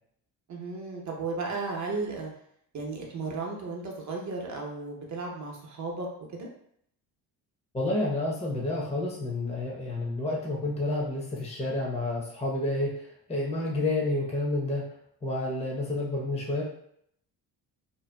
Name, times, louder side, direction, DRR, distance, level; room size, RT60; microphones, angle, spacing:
voice 1, 0.5-2.3 2.7-6.1 6.3-6.5, right 3 dB, 40° right, 0 dB, 0.8 m, -34 dB
voice 2, 7.7-14.8 15.2-16.6, left 2 dB, 15° left, -3 dB, 0.7 m, -30 dB
2.7 x 2.2 x 2.2 m, 0.70 s
supercardioid pair, 60°, 43 cm